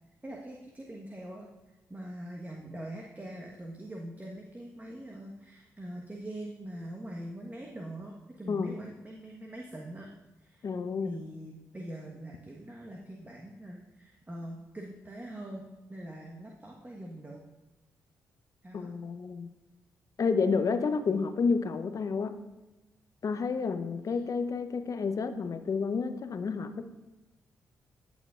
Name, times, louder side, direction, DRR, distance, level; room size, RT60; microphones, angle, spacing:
voice 1, 0.2-1.5 1.9-10.1 10.4-10.7 11.0-17.4 18.6-18.9 21.1-21.2 24.1-24.2, right 1 dB, 20° right, -1 dB, 1.3 m, -43 dB
voice 2, 10.6-11.1 18.7-19.5 20.2-22.4 23.2-26.9, left 5 dB, 50° left, 9 dB, 0.8 m, -30 dB
14.5 x 7.1 x 2.5 m, 1.0 s
hypercardioid pair, 40°, 7 cm